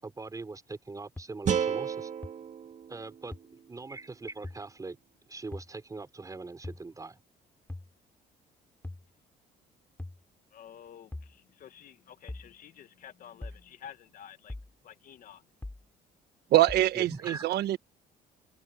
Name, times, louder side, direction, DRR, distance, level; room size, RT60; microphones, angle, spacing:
voice 1, 0.0-2.1 2.9-5.0 5.3-7.2 16.9-17.4, right 3 dB, 20° right, 5.9 m, -41 dB
sound 1, 1.2-1.3 2.2-2.3 3.3-3.4 4.4-4.6 5.5-5.7 6.6-6.8 7.7-7.9 8.8-9.1 10.0-10.2 11.1-11.3 12.3-12.5 13.4-13.6 14.5-14.7 15.6-15.8 16.7-16.9, left 2 dB, 10° left, 3.6 m, -40 dB
sound 2, 1.5-4.6, right 8 dB, 45° right, 2.2 m, -34 dB
voice 2, 10.5-14.6 14.8-15.4, left 9 dB, 55° left, 1.9 m, -50 dB
voice 3, 16.5-17.8, right 15 dB, 70° right, 1.3 m, -24 dB
open air
cardioid pair, 110°, 17 cm